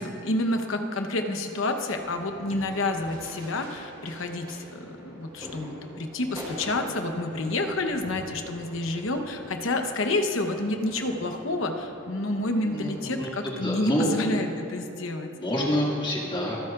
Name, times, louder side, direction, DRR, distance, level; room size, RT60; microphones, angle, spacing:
voice 1, 0.0-15.3, left 2 dB, 70° left, 5 dB, 1.0 m, -29 dB
sound 1, 2.0-13.3, equal, 25° right, 3.0 m, -44 dB
voice 2, 12.6-14.1 15.3-16.6, equal, 25° left, -4 dB, 2.2 m, -28 dB
25.0 x 9.2 x 2.5 m, 3.0 s
head